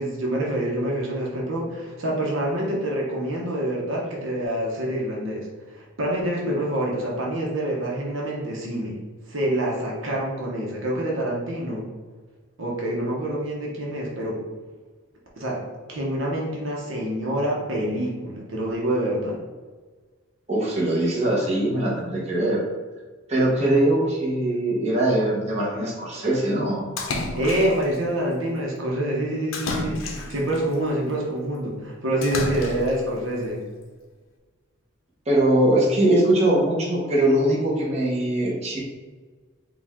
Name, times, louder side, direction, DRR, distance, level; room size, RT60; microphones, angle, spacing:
voice 1, 0.0-9.0 9.3-11.9 12.6-14.4 15.3-15.6 15.9-19.4 27.4-33.6, right 1 dB, 75° right, -2 dB, 0.9 m, -26 dB
voice 2, 20.5-22.6 23.3-26.9 35.3-38.8, right 1 dB, 35° right, -5 dB, 1.0 m, -21 dB
Splash splatter, 27.0-28.0 29.5-30.6 32.2-33.0, left 2 dB, 85° left, 0.6 m, -30 dB
4.9 x 2.4 x 3.6 m, 1.4 s
head